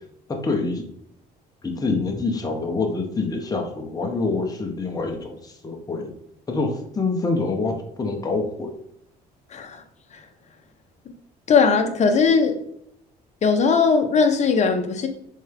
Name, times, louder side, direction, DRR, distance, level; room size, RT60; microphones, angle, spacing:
voice 1, 0.3-0.8 1.6-6.1 6.5-8.7, left 3 dB, 20° left, 1.4 m, -26 dB
voice 2, 9.5-9.8 10.1-10.2 11.5-12.6 13.4-15.1, left 5 dB, 40° left, 1.2 m, -19 dB
6.2 x 4.6 x 3.7 m
cardioid pair, 110°, 17 cm